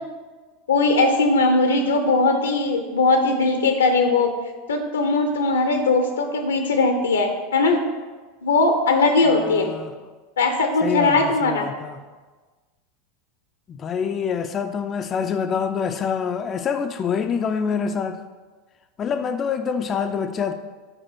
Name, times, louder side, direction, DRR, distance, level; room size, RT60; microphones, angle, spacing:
voice 1, 0.7-4.3 4.7-7.8 8.4-9.7 10.4-11.6, left 3 dB, 70° left, 0.7 m, -19 dB
voice 2, 9.2-9.9 10.8-12.0 13.7-18.2 19.0-20.5, left 6 dB, 30° left, 0.4 m, -26 dB
6.2 x 4.7 x 6.2 m
figure-of-eight pair, 80°, 0 cm